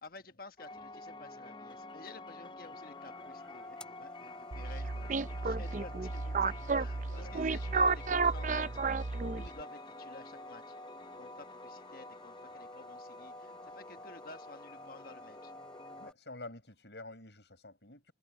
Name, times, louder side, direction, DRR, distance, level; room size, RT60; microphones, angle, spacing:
voice 1, 0.0-8.7 9.3-10.8 11.1-15.5, left 3 dB, 55° left, 1.3 m, -52 dB
sound 1, 0.6-16.1, left 2 dB, 25° left, 0.6 m, -48 dB
sound 2, 2.6-16.1, left 1 dB, 5° left, 5.2 m, -59 dB
sound 3, 4.5-9.6, right 4 dB, 45° right, 0.6 m, -32 dB
voice 2, 7.0-7.5 16.0-18.1, left 2 dB, 70° left, 6.9 m, -49 dB
head